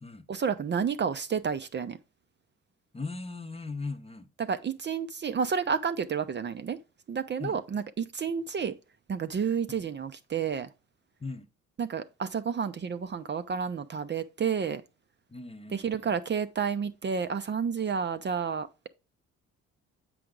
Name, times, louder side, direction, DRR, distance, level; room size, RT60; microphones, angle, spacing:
voice 1, 0.3-2.0 4.4-6.8 7.1-8.7 9.1-10.7 11.8-14.8 15.7-18.9, right 6 dB, 35° right, 0.6 m, -30 dB
voice 2, 2.9-4.3 7.4-7.6 9.7-9.9 11.2-11.5 15.3-16.2, left 3 dB, 20° left, 0.8 m, -39 dB
7.6 x 4.6 x 3.8 m
supercardioid pair, 60°, 31 cm